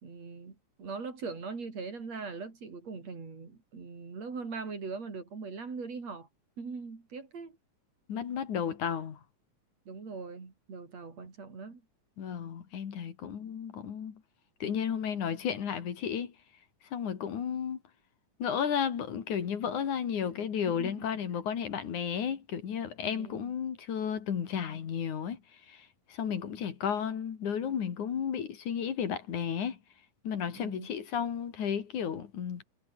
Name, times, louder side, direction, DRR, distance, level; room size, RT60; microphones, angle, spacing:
voice 1, 0.0-6.3 6.6-7.6 9.9-11.8 20.7-21.1 23.0-23.5 30.5-30.9, right 4 dB, 55° right, 5.6 m, -41 dB
voice 2, 8.1-9.2 12.2-14.2 14.6-16.3 16.9-17.8 18.4-25.4 25.7-29.8 30.2-32.6, left 8 dB, 70° left, 3.8 m, -33 dB
omnidirectional pair, 3.6 m